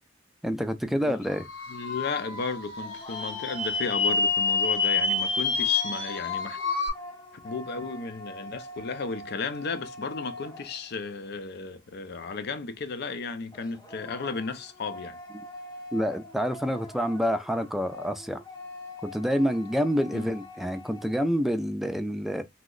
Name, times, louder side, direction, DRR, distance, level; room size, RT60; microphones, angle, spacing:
voice 1, 0.4-1.5 15.9-18.4 19.0-22.4, equal, ahead, 0.3 m, -27 dB
sound 1, 1.3-6.9, left 4 dB, 75° left, 0.9 m, -28 dB
voice 2, 1.7-6.6 7.4-15.2 20.1-20.3, left 4 dB, 60° left, 0.5 m, -34 dB
sound 2, 2.8-11.2 13.5-21.3, left 1 dB, 20° left, 0.7 m, -43 dB
2.8 x 2.1 x 3.7 m
head